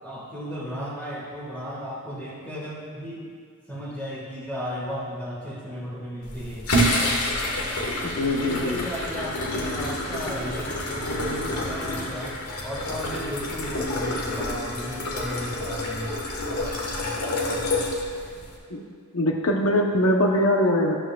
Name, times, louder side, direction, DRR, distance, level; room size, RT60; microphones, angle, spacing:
voice 1, 0.0-3.3 3.7-6.9 8.4-12.3 12.6-16.1, equal, 5° left, -6 dB, 1.7 m, -34 dB
sound 1, 6.2-18.6, left 1 dB, 80° left, 1.5 m, -28 dB
voice 2, 8.0-8.8 18.7-18.8 19.1-21.0, left 1 dB, 65° left, 1 dB, 0.8 m, -22 dB
12.5 x 11.5 x 2.4 m, 2.2 s
head